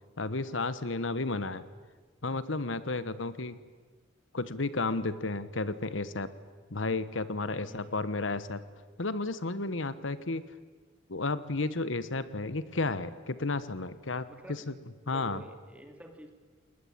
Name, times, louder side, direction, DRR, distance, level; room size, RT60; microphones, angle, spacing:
voice 1, 0.2-1.6 2.2-3.6 4.3-6.3 6.7-8.6 9.0-10.4 11.1-14.7 15.1-15.4, left 3 dB, 80° left, 15 dB, 1.3 m, -32 dB
voice 2, 7.6-8.0 14.3-14.7 15.0-16.3, right 1 dB, 5° right, 5 dB, 2.7 m, -50 dB
29.0 x 20.5 x 9.0 m, 1.4 s
head